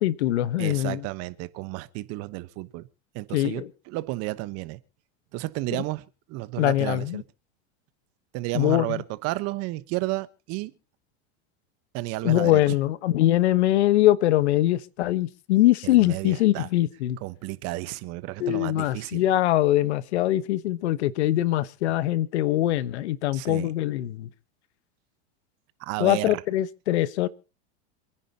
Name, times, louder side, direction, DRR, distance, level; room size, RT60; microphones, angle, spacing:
voice 1, 0.0-1.1 3.3-3.7 6.6-7.2 8.5-9.0 12.2-17.2 18.4-24.3 26.0-27.3, left 14 dB, 85° left, 1.2 m, -23 dB
voice 2, 0.6-2.9 3.1-4.8 5.3-7.2 8.3-10.7 11.9-12.6 15.8-16.7 17.2-19.3 23.3-23.7 25.8-26.4, right 19 dB, 50° right, 1.1 m, -32 dB
27.5 x 10.0 x 2.9 m
supercardioid pair, 135°, 33 cm